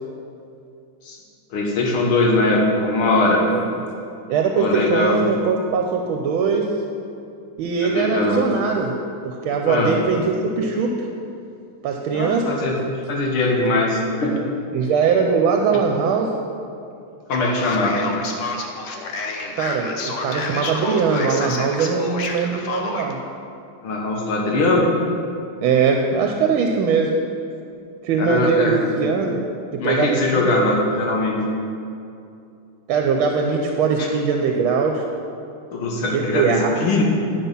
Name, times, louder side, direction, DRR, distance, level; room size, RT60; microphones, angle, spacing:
voice 1, 1.5-3.5 4.6-5.2 7.8-8.4 9.7-9.9 12.1-12.8 13.1-14.5 17.3-18.0 23.8-24.9 28.2-28.8 29.8-31.4 34.0-34.1 35.7-37.0, left 2 dB, 85° left, -1 dB, 2.2 m, -20 dB
voice 2, 4.3-6.7 7.6-8.9 9.2-10.9 11.8-12.5 14.7-16.3 19.5-23.2 25.6-27.2 28.0-29.4 29.7-30.6 32.9-35.0 36.0-36.7, right 5 dB, 80° right, 2 dB, 1.4 m, -21 dB
Male speech man speaking, 17.3-23.1, left 3 dB, 60° left, 0.8 m, -29 dB
10.5 x 5.8 x 5.4 m, 2.6 s
omnidirectional pair, 2.3 m